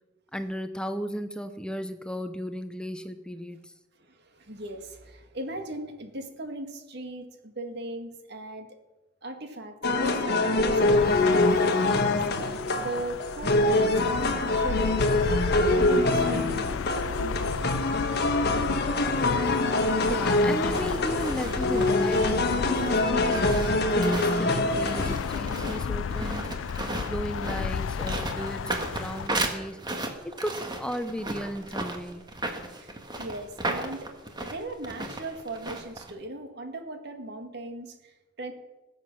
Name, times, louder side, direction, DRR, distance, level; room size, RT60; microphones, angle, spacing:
voice 1, 0.3-3.7 20.0-23.4 23.9-26.5 27.1-29.8 30.2-32.2, equal, 5° left, 9 dB, 0.5 m, -34 dB
voice 2, 4.0-8.7 9.2-15.2 15.7-16.7 17.2-17.6 32.8-34.1 34.4-38.5, right 1 dB, 60° right, 5 dB, 1.9 m, -38 dB
sound 1, 9.8-25.2, left 2 dB, 55° left, 1.4 m, -24 dB
sound 2, 10.7-29.3, left 7 dB, 85° left, 0.4 m, -34 dB
sound 3, 20.7-36.1, right 2 dB, 25° right, 1.7 m, -35 dB
20.5 x 7.8 x 6.1 m, 1.1 s
head